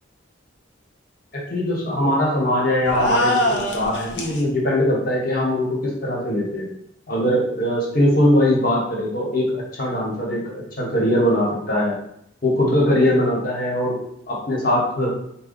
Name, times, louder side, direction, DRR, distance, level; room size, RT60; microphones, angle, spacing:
voice 1, 1.3-6.7 7.1-12.0 12.4-13.9 14.3-15.1, left 1 dB, 45° left, -4 dB, 1.4 m, -21 dB
sound 1, 2.9-4.4, left 1 dB, 65° left, 0.7 m, -22 dB
4.1 x 2.3 x 4.2 m, 0.71 s
head